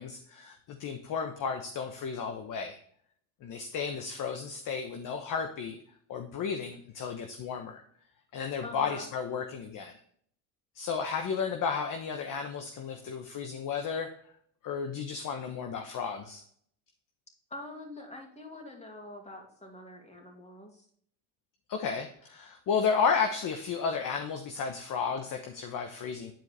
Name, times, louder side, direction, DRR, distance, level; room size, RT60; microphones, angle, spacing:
voice 1, 0.0-2.8 3.4-5.8 6.1-7.8 8.3-9.9 10.7-14.1 14.6-16.4 21.7-26.3, left 6 dB, 50° left, 5 dB, 1.1 m, -33 dB
voice 2, 8.6-9.1 17.5-20.8, left 2 dB, 15° left, 2 dB, 2.5 m, -45 dB
10.5 x 4.6 x 3.3 m, 0.62 s
supercardioid pair, 95°, 42 cm